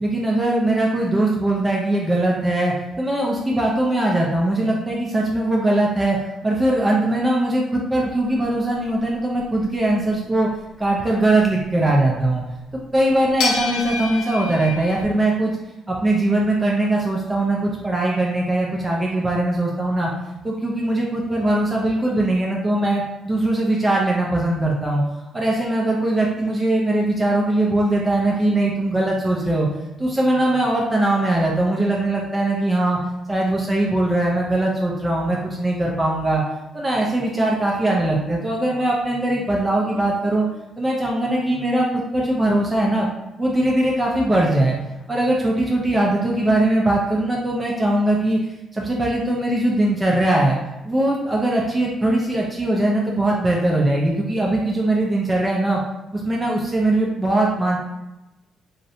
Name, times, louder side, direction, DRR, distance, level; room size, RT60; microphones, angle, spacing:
voice 1, 0.0-6.2 6.4-10.5 10.8-12.4 12.9-15.5 15.9-20.1 20.4-25.0 25.3-29.7 30.0-33.0 33.3-36.4 36.7-40.5 40.8-43.1 43.4-44.8 45.1-48.4 48.7-50.6 50.8-55.8 56.1-57.8, right 1 dB, 20° right, -2 dB, 0.4 m, -20 dB
sound 1, 8.2-9.8 12.5-12.6 13.4-15.0, left 4 dB, 85° left, 0.5 m, -28 dB
2.5 x 2.1 x 2.7 m, 0.99 s
cardioid pair, 90°, 0 cm